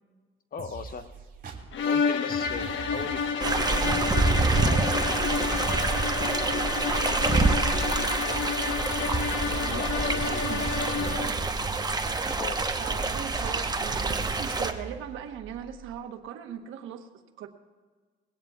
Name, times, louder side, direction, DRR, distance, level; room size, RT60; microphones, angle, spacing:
voice 1, 0.5-1.1 1.8-8.4 9.5-10.9 12.4-12.6, left 5 dB, 45° left, 9 dB, 1.0 m, -40 dB
sound 1, 0.6-1.8 2.3-16.0, right 5 dB, 45° right, 2.6 m, -41 dB
sound 2, 1.7-11.4, left 6 dB, 75° left, 1.1 m, -30 dB
sound 3, 3.4-14.7, right 3 dB, 20° right, 1.0 m, -27 dB
voice 2, 9.0-11.3 12.8-17.5, right 9 dB, 85° right, 6 dB, 1.1 m, -40 dB
21.0 x 17.0 x 2.4 m, 1.4 s
cardioid pair, 90°, 20 cm